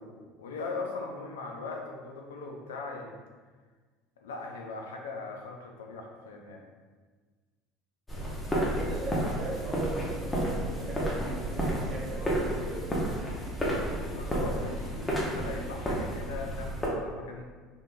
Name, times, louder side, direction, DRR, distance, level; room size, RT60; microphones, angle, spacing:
voice 1, 0.0-3.2 4.2-6.7 8.4-8.7 14.1-17.4, left 4 dB, 80° left, 2 dB, 0.4 m, -39 dB
sound 1, 8.1-16.9, right 1 dB, 20° left, 1.0 m, -31 dB
voice 2, 8.5-12.8, right 2 dB, 45° right, -4 dB, 1.3 m, -39 dB
3.4 x 3.4 x 2.5 m, 1.4 s
hypercardioid pair, 70°, 0 cm